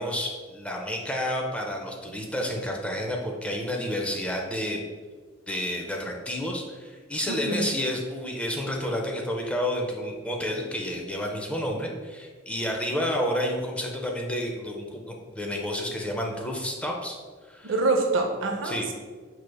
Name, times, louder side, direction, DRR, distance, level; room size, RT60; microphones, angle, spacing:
voice 1, 0.0-4.8 5.5-17.2 17.5-17.7 18.6-18.9, equal, 5° left, 0 dB, 0.4 m, -30 dB
voice 2, 7.3-7.7 17.6-18.9, right 3 dB, 75° right, 3 dB, 0.5 m, -26 dB
4.6 x 3.1 x 2.2 m, 1.5 s
head